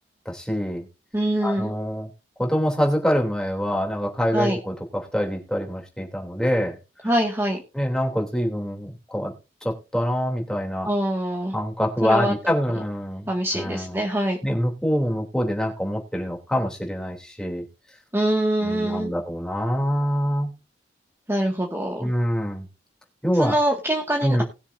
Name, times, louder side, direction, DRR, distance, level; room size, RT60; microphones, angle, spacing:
voice 1, 0.2-0.9 1.4-2.1 2.4-6.7 7.7-9.3 9.6-10.9 11.5-13.3 13.5-14.0 14.4-17.6 18.6-20.5 22.0-22.7 23.2-23.5 24.2-24.4, equal, 5° left, 0 dB, 3.2 m, -25 dB
voice 2, 1.1-1.7 4.3-4.6 7.0-7.6 10.8-11.5 12.0-12.3 13.3-14.4 18.1-19.1 21.3-22.1 23.3-24.4, right 1 dB, 15° right, -1 dB, 2.0 m, -24 dB
20.0 x 7.2 x 2.7 m, 0.29 s
head